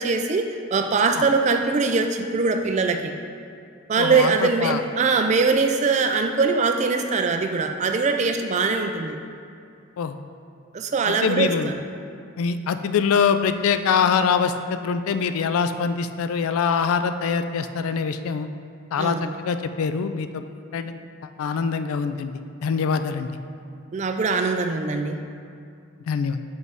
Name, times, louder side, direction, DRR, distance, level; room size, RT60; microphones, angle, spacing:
voice 1, 0.0-3.2 3.9-9.2 10.7-11.8 19.0-19.4 23.9-25.2, right 4 dB, 35° right, 6 dB, 0.3 m, -22 dB
voice 2, 4.0-4.8 10.0-10.2 11.1-11.7 12.4-18.5 18.9-20.5 20.7-21.0 21.4-22.3 22.6-23.3 26.1-26.4, left 6 dB, 90° left, 10 dB, 0.3 m, -24 dB
6.1 x 5.3 x 3.5 m, 2.4 s
head